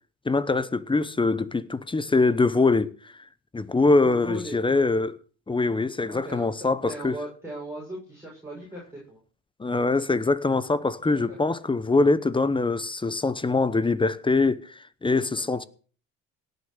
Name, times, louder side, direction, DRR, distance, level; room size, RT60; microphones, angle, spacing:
voice 1, 0.3-3.1 3.5-5.2 5.5-7.2 9.6-14.7 15.0-15.6, left 3 dB, 15° left, 0.8 m, -23 dB
voice 2, 4.0-4.6 6.1-9.2 11.0-11.7 15.3-15.7, right 1 dB, 5° right, 6.7 m, -39 dB
18.0 x 6.7 x 6.5 m
supercardioid pair, 95°, 35 cm